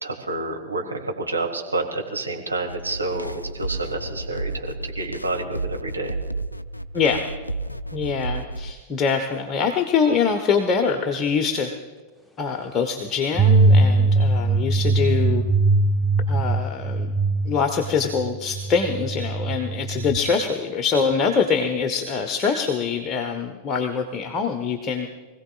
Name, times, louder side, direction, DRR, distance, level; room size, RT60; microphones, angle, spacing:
voice 1, 0.0-6.1, right 2 dB, 80° right, 1 dB, 1.8 m, -29 dB
sound 1, 2.7-8.7, right 2 dB, 85° left, 0.3 m, -32 dB
voice 2, 6.9-7.3 7.9-11.7 12.4-15.4 16.3-17.1 17.4-25.1, left 5 dB, 30° left, 3 dB, 1.0 m, -24 dB
sound 2, 13.4-20.2, right 3 dB, ahead, 0.8 m, -21 dB
24.0 x 16.0 x 2.4 m, 1.3 s
figure-of-eight pair, 90°, 0 cm